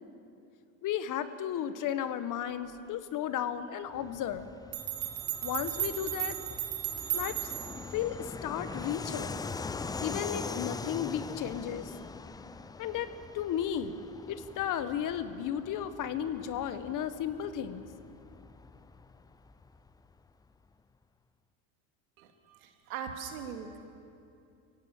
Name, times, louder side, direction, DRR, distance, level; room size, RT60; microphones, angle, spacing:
voice 1, 0.8-4.5 5.4-6.4 7.1-7.5 7.9-9.4 10.0-11.9 12.8-13.1 13.3-14.0 14.3-17.8, left 9 dB, 50° left, 12 dB, 1.4 m, -34 dB
Fixed-wing aircraft airplane, 3.9-20.1, left 4 dB, 10° left, 0.4 m, -42 dB
sound 1, 4.4-4.5 4.7-7.9, right 13 dB, 55° right, 2.0 m, -35 dB
voice 2, 22.2-23.8, right 7 dB, 90° right, 5 dB, 2.5 m, -41 dB
24.5 x 17.0 x 7.3 m, 2.6 s
supercardioid pair, 100°, 41 cm